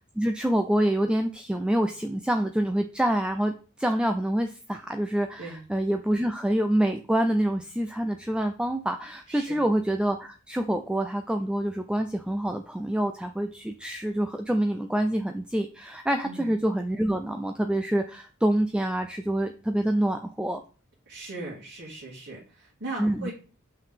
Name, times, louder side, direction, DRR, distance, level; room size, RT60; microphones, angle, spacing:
voice 1, 0.0-20.6 23.0-23.3, right 1 dB, 5° right, 5 dB, 0.4 m, -26 dB
voice 2, 9.3-9.6 16.2-16.5 21.1-23.3, right 2 dB, 50° right, -6 dB, 2.2 m, -38 dB
5.9 x 5.4 x 3.6 m, 0.36 s
head